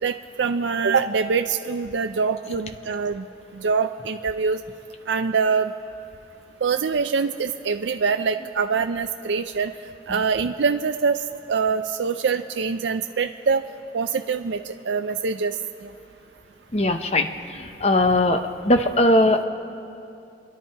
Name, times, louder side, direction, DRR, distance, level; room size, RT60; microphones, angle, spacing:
voice 1, 0.0-3.2 3.5-4.6 5.1-5.7 6.6-9.7 10.1-11.2 11.5-13.6 13.9-15.6 15.8-15.9, right 5 dB, 80° right, 7 dB, 0.5 m, -24 dB
voice 2, 16.7-17.3 17.8-18.4 18.6-19.5, left 1 dB, 35° left, 7 dB, 0.8 m, -19 dB
28.5 x 11.0 x 4.6 m, 2.6 s
head